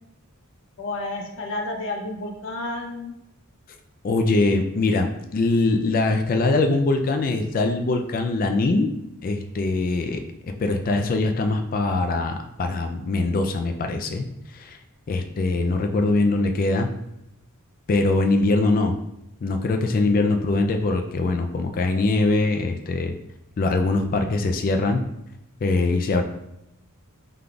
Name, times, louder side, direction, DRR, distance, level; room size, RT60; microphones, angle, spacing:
voice 1, 0.8-3.1, left 2 dB, 60° left, 2 dB, 0.8 m, -31 dB
voice 2, 4.0-8.9 9.2-10.2 10.6-14.2 14.5-14.8 15.1-16.9 17.9-18.9 19.4-23.1 23.6-25.0 25.6-26.2, left 2 dB, 40° left, 5 dB, 0.3 m, -22 dB
5.0 x 3.8 x 2.3 m, 0.86 s
head